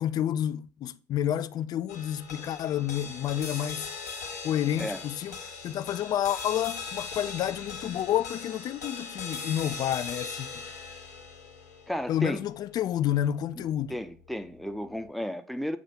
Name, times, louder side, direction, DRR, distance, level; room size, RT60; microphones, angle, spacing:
voice 1, 0.0-3.9 4.4-5.4 5.6-10.6 12.1-13.9, left 11 dB, 50° left, 0.4 m, -29 dB
sound 1, 1.9-14.4, left 5 dB, 90° left, 1.2 m, -40 dB
voice 2, 11.9-12.4 13.6-15.8, equal, ahead, 0.7 m, -33 dB
7.0 x 2.5 x 5.7 m
hypercardioid pair, 50°, 9 cm